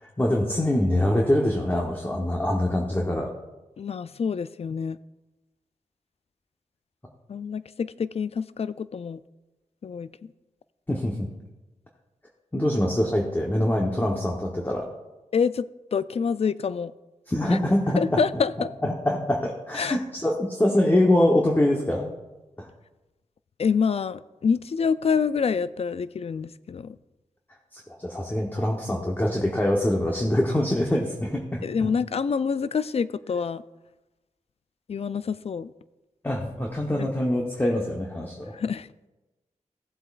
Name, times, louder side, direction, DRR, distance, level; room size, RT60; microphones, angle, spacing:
voice 1, 0.0-3.3 10.9-11.3 12.5-14.8 17.3-18.2 18.8-22.1 22.6-22.7 27.7-31.9 36.2-38.6, left 1 dB, 15° left, 0 dB, 1.1 m, -24 dB
voice 2, 3.8-5.0 7.3-9.2 9.8-10.3 15.3-16.9 17.5-17.6 18.0-18.7 19.7-20.0 23.6-27.0 31.6-33.6 34.9-35.7 37.0-37.1 38.5-38.9, left 6 dB, 50° left, 16 dB, 0.4 m, -27 dB
15.5 x 7.6 x 2.5 m, 1.1 s
wide cardioid pair, 75°, 13 cm